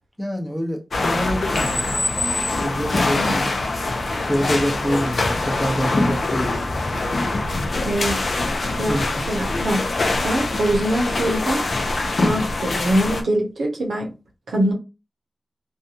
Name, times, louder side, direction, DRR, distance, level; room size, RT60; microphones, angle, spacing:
voice 1, 0.2-2.0 2.6-3.5 4.3-6.5 8.9-9.1, equal, 5° left, 0.8 m, -26 dB
sound 1, 0.9-13.2, left 2 dB, 70° left, 0.5 m, -23 dB
voice 2, 3.1-3.5 7.8-8.2 8.8-9.8 10.2-11.7 12.1-14.1 14.5-14.7, right 1 dB, 90° right, 0.6 m, -23 dB
2.5 x 2.2 x 2.7 m
cardioid pair, 45°, 0 cm